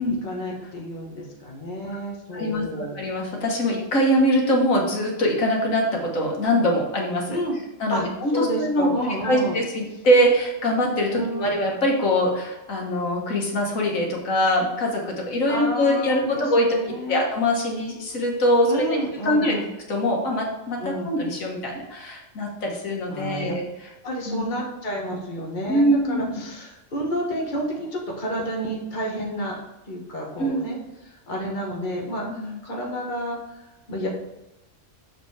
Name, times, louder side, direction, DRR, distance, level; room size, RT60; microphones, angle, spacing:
voice 1, 0.2-3.0 7.3-7.6 7.9-8.0 8.3-9.6 11.1-11.5 15.5-17.2 18.7-19.6 20.8-21.1 23.1-23.5 24.0-29.6 29.9-34.1, equal, 40° left, -2 dB, 1.5 m, -30 dB
voice 2, 2.3-7.4 7.8-8.9 9.2-19.0 19.2-19.6 19.9-23.9 24.3-24.5 25.7-26.4 30.4-30.7 32.3-32.6, equal, 90° left, 0 dB, 1.8 m, -23 dB
6.8 x 5.0 x 4.8 m, 0.99 s
omnidirectional pair, 1.3 m